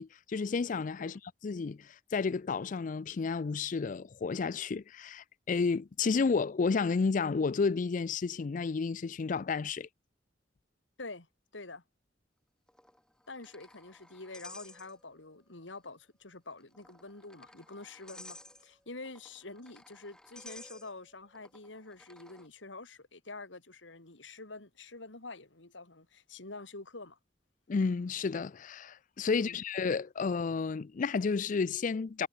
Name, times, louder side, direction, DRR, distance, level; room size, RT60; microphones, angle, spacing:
voice 1, 0.0-9.9 27.7-32.3, left 4 dB, 45° left, 0.4 m, -31 dB
voice 2, 11.5-11.8 13.3-27.2 29.3-29.6, left 3 dB, 80° left, 2.9 m, -47 dB
sound 1, 12.7-15.3 15.6-15.7 16.6-22.5, left 1 dB, 5° left, 2.1 m, -54 dB
head